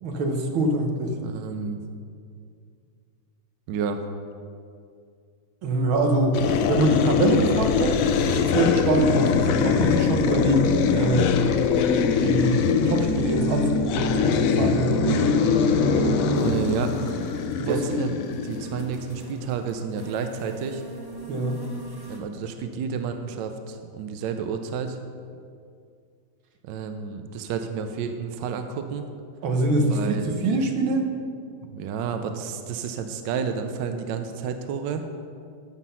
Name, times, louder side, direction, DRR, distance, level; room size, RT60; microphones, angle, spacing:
voice 1, 0.0-1.2 5.6-6.4 6.7-8.0 8.4-11.3 12.2-15.0 17.6-17.8 21.3-21.6 29.4-31.0, right 1 dB, 85° right, 3 dB, 1.9 m, -24 dB
voice 2, 1.2-1.8 3.7-4.0 16.3-17.1 17.6-18.1 18.4-20.8 22.1-25.0 26.6-29.1 29.9-30.3 31.7-35.0, right 6 dB, 70° right, 7 dB, 1.3 m, -30 dB
sound 1, 6.3-19.2, left 6 dB, 85° left, 0.7 m, -23 dB
sound 2, 11.5-17.0, right 1 dB, 25° left, 0.8 m, -27 dB
sound 3, 16.3-22.2, right 2 dB, 15° right, 0.9 m, -41 dB
13.5 x 5.9 x 5.6 m, 2.3 s
omnidirectional pair, 2.2 m